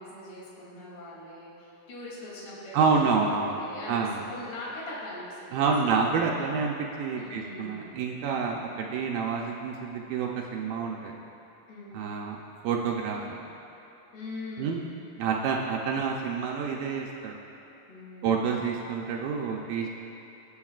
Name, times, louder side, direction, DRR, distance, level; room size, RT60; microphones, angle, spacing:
voice 1, 0.0-5.9 7.1-7.8 11.7-11.9 14.1-14.9 17.9-18.6, left 1 dB, 80° left, -6 dB, 4.9 m, -41 dB
voice 2, 2.7-3.6 3.9-4.2 5.5-11.1 11.9-12.4 12.6-13.4 14.6-14.8 15.2-17.3 18.2-19.9, right 5 dB, 75° right, -1 dB, 2.2 m, -28 dB
25.0 x 8.4 x 2.4 m, 3.0 s
omnidirectional pair, 4.6 m